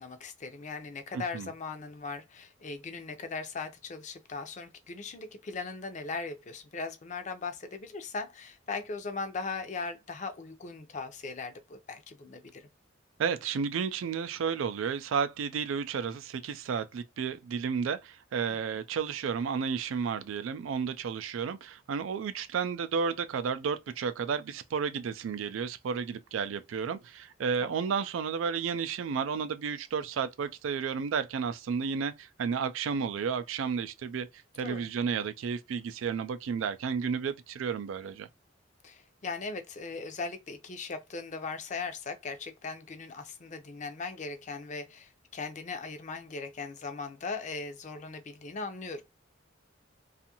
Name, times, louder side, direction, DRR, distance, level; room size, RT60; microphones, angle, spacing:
voice 1, 0.0-12.7 34.6-34.9 38.8-49.0, left 4 dB, 40° left, 0.5 m, -39 dB
voice 2, 1.1-1.5 13.2-34.3 34.5-38.3, right 6 dB, 85° right, 0.3 m, -32 dB
2.6 x 2.4 x 2.8 m
head